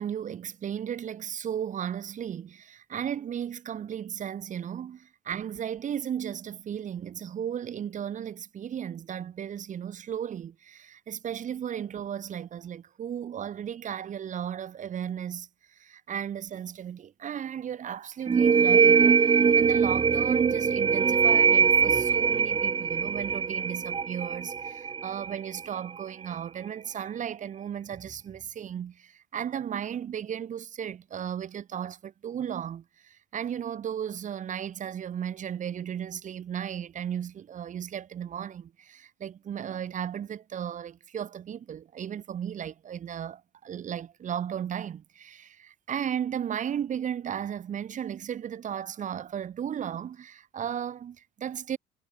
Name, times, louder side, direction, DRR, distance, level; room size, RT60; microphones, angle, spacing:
voice 1, 0.0-15.5 15.8-51.8, right 9 dB, 50° right, 2.4 m, -35 dB
sound 1, 18.3-25.7, right 6 dB, 30° right, 1.3 m, -22 dB
cardioid pair, 110°, 17 cm